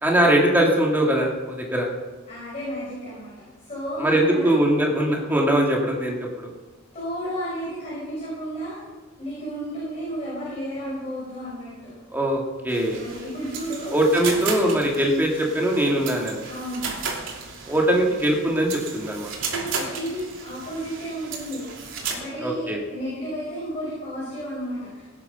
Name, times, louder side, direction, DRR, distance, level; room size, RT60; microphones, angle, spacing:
voice 1, 0.0-1.9 4.0-6.5 12.1-13.0 13.9-16.4 17.7-19.3 22.4-22.8, right 1 dB, 10° right, -1 dB, 2.5 m, -21 dB
voice 2, 2.3-4.6 6.9-11.9 12.9-13.9 16.4-16.9 19.5-21.8 22.1-25.0, equal, 30° left, -8 dB, 6.0 m, -33 dB
sound 1, 12.7-22.1, right 5 dB, 80° right, 3.0 m, -34 dB
18.0 x 9.7 x 5.7 m, 1.2 s
head